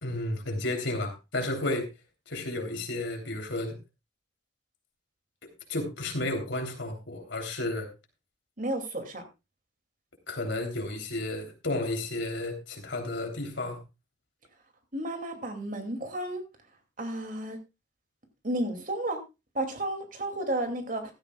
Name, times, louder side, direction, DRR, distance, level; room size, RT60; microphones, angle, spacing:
voice 1, 0.0-1.9 2.3-3.8 5.7-7.9 10.3-13.8, left 2 dB, 70° left, 3 dB, 3.3 m, -32 dB
voice 2, 8.6-9.2 14.9-16.4 17.0-17.6 18.4-19.2 19.5-21.1, right 1 dB, 45° right, 5 dB, 2.5 m, -32 dB
15.5 x 13.0 x 2.3 m, 0.25 s
head